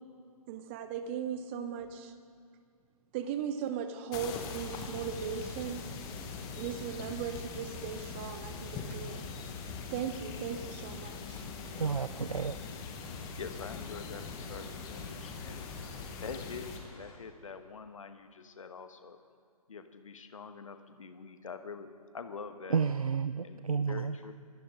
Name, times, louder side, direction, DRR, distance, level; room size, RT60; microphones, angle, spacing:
voice 1, 0.5-2.1 3.1-5.9 6.6-9.2 9.9-11.7 12.1-12.2, right 8 dB, 20° right, 10 dB, 0.6 m, -38 dB
sound 1, 4.1-16.8, left 5 dB, 20° left, 1.4 m, -42 dB
voice 2, 11.8-12.6 22.7-24.2, right 6 dB, 70° right, 13 dB, 0.5 m, -31 dB
sound 2, 13.0-17.3, left 1 dB, 75° left, 3.9 m, -57 dB
voice 3, 13.4-15.6 16.2-19.2 19.7-22.8 23.4-24.3, left 5 dB, 60° left, 9 dB, 1.3 m, -45 dB
25.5 x 14.5 x 3.8 m, 2.3 s
figure-of-eight pair, 130°, 19 cm